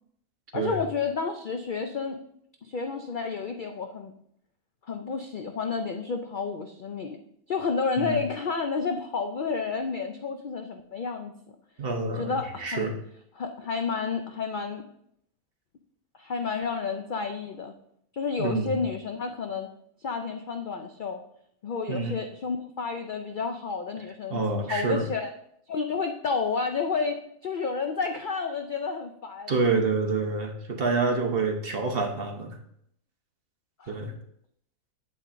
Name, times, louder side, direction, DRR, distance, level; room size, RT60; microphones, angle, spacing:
voice 1, 0.5-2.2 2.6-4.1 4.9-7.2 7.5-11.3 12.2-12.9 13.4-14.8 16.2-17.7 18.1-19.7 20.0-21.2 21.6-24.4 24.7-25.3 25.7-29.5 33.8-33.9, left 5 dB, 75° left, 5 dB, 0.4 m, -30 dB
voice 2, 11.8-13.0 18.4-18.8 21.9-22.2 24.3-25.1 29.5-32.6 33.9-34.1, right 4 dB, 45° right, 3 dB, 1.0 m, -27 dB
8.5 x 8.4 x 2.6 m, 0.73 s
omnidirectional pair, 1.5 m